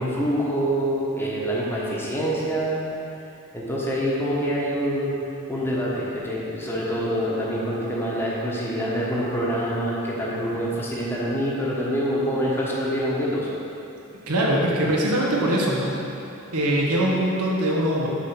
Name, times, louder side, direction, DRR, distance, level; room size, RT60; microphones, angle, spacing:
voice 1, 0.0-2.8 3.5-5.2 5.5-13.5, equal, 10° left, -6 dB, 1.1 m, -25 dB
voice 2, 14.3-15.9 16.5-18.1, right 1 dB, 80° right, -3 dB, 1.2 m, -22 dB
7.1 x 4.2 x 5.9 m, 2.7 s
head